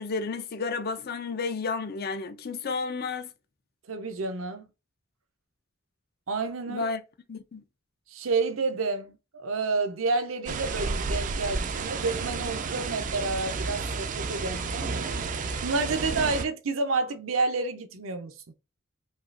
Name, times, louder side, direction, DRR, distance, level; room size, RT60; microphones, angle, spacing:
voice 1, 0.0-3.3 6.7-7.0 7.3-7.6, left 4 dB, 50° left, 0.5 m, -32 dB
voice 2, 3.9-4.7 6.3-6.9 8.1-14.9 15.3-18.3, right 3 dB, 75° right, 0.7 m, -30 dB
sound 1, 10.5-16.5, right 4 dB, 40° right, 0.4 m, -31 dB
5.4 x 2.4 x 2.5 m
head